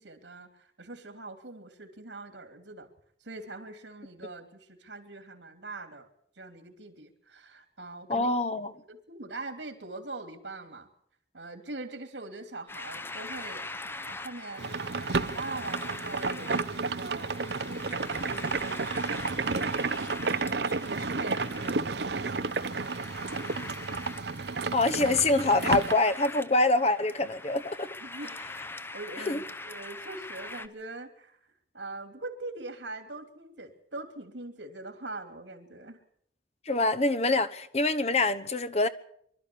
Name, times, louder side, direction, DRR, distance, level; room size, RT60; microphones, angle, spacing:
voice 1, 0.0-2.9 3.2-6.1 6.4-8.3 8.7-10.9 11.3-14.7 15.0-17.9 18.3-19.4 19.9-20.3 20.8-23.4 28.0-28.4 28.9-36.0, right 2 dB, 90° right, 3.0 m, -42 dB
voice 2, 8.1-8.7 24.7-27.9 29.3-29.4 36.6-38.9, left 2 dB, 35° left, 1.0 m, -25 dB
sound 1, 12.7-30.7, left 2 dB, 15° left, 0.8 m, -43 dB
sound 2, 14.6-25.9, right 4 dB, 70° right, 0.8 m, -31 dB
24.5 x 12.5 x 8.6 m
head